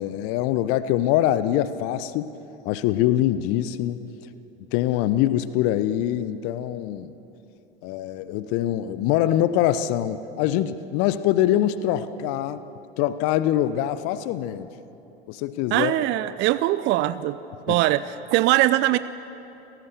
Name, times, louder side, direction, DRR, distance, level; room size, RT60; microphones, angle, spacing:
voice 1, 0.0-2.3 2.6-4.0 4.7-7.1 7.8-12.6 13.0-14.7 15.3-16.0 17.7-17.8, left 12 dB, 45° left, 14 dB, 0.9 m, -24 dB
voice 2, 15.7-17.4 17.7-19.0, right 16 dB, 35° right, 15 dB, 0.6 m, -21 dB
28.5 x 18.0 x 6.9 m, 3.0 s
figure-of-eight pair, 75°, 31 cm